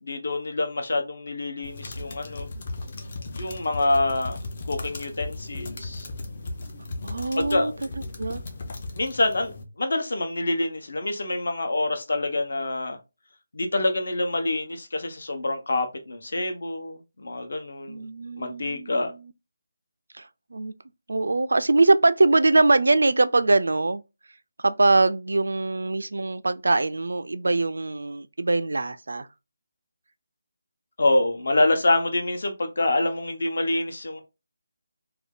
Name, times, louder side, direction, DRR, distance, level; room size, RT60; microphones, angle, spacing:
voice 1, 0.0-2.5 3.3-4.4 4.7-6.1 7.4-7.7 9.0-13.0 13.5-18.1 18.4-19.1 31.0-34.2, left 2 dB, 60° left, 0.8 m, -26 dB
sound 1, 1.6-9.6, left 2 dB, 30° left, 0.5 m, -36 dB
voice 2, 7.0-7.9 8.2-8.4 17.9-19.3 20.1-20.7 21.1-24.0 24.6-29.3, right 2 dB, 85° right, 0.3 m, -22 dB
2.6 x 2.3 x 3.5 m
hypercardioid pair, 175°, 0 cm